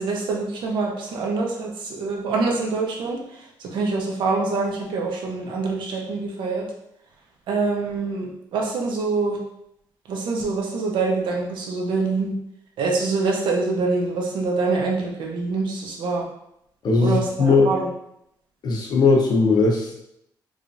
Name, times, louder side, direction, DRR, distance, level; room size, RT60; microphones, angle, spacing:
voice 1, 0.0-3.2 3.7-6.6 7.5-9.4 10.1-12.3 12.8-16.2 17.0-17.9, right 3 dB, 85° right, -1 dB, 0.8 m, -25 dB
voice 2, 16.8-17.7 18.6-20.0, left 3 dB, 60° left, 0 dB, 0.8 m, -19 dB
4.7 x 2.5 x 2.6 m, 0.79 s
cardioid pair, 135°, 8 cm